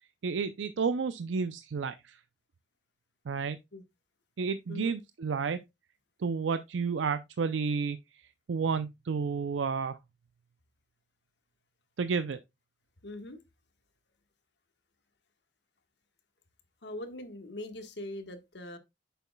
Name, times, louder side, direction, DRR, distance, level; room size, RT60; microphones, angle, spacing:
voice 1, 0.2-2.2 3.3-3.6 4.4-5.6 6.2-10.0 12.0-12.4, right 5 dB, 85° right, 0.5 m, -31 dB
voice 2, 13.0-13.4 16.8-18.8, left 1 dB, 65° left, 1.4 m, -41 dB
8.4 x 6.9 x 2.2 m
head